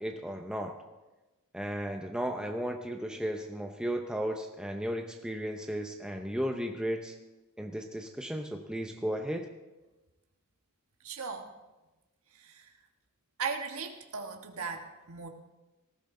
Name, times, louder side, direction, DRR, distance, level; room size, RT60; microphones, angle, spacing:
voice 1, 0.0-0.8 1.5-7.2 7.6-9.5, equal, 5° right, 3 dB, 0.7 m, -35 dB
voice 2, 11.0-11.5 12.4-12.6 13.4-15.3, right 5 dB, 65° right, 4 dB, 1.4 m, -37 dB
18.5 x 15.0 x 3.8 m, 1.1 s
head